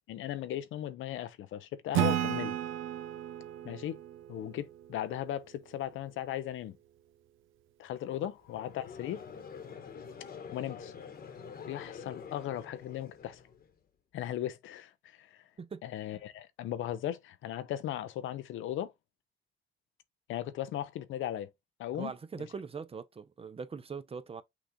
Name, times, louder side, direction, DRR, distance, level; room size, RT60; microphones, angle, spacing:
voice 1, 0.1-2.5 3.6-4.0 4.3-6.8 7.8-9.2 10.5-10.9 11.7-13.4 14.1-15.5 15.8-18.9 20.3-21.5 21.8-22.1, left 11 dB, 80° left, 0.7 m, -37 dB
Acoustic guitar / Strum, 1.9-5.4, right 12 dB, 85° right, 0.6 m, -33 dB
Conversation / Crowd, 8.4-13.7, left 6 dB, 50° left, 1.2 m, -47 dB
voice 2, 22.0-24.4, right 5 dB, 30° right, 0.6 m, -41 dB
6.0 x 2.4 x 3.7 m
cardioid pair, 90°, 20 cm